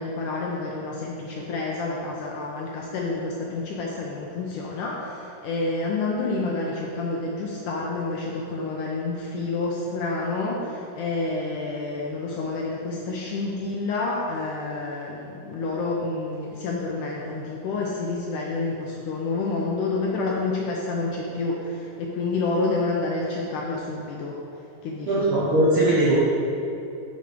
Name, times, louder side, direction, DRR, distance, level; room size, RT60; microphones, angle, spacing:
voice 1, 0.0-24.4 24.8-25.3, left 3 dB, 75° left, -2 dB, 2.0 m, -29 dB
voice 2, 25.1-26.1, right 1 dB, 65° right, -8 dB, 1.3 m, -20 dB
6.8 x 6.2 x 5.1 m, 2.8 s
omnidirectional pair, 3.9 m